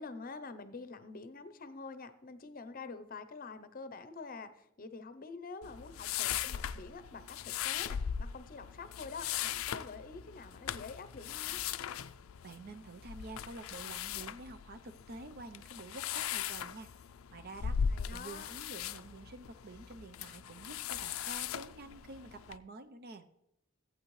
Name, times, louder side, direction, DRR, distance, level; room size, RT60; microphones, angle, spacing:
voice 1, 0.0-11.6 17.9-18.5, left 4 dB, 45° left, 12 dB, 0.6 m, -47 dB
sound 1, 5.6-22.6, left 8 dB, 90° left, 0.4 m, -39 dB
voice 2, 12.4-16.9 17.3-17.8 18.1-23.3, right 2 dB, 50° right, 9 dB, 0.6 m, -48 dB
14.5 x 8.7 x 3.2 m, 0.83 s
head